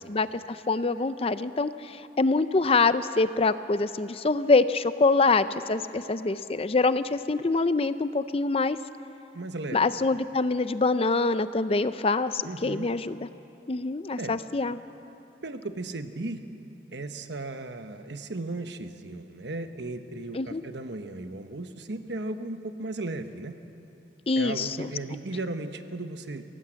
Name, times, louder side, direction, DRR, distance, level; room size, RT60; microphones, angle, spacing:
voice 1, 0.0-8.8 9.7-13.2 13.7-14.8 20.3-20.6 24.3-24.9, left 3 dB, 35° left, 13 dB, 0.5 m, -25 dB
voice 2, 9.3-9.8 12.4-12.9 14.2-14.4 15.4-16.4 16.9-23.6 24.4-26.4, right 2 dB, 75° right, 8 dB, 1.1 m, -36 dB
23.5 x 18.0 x 7.6 m, 2.8 s
head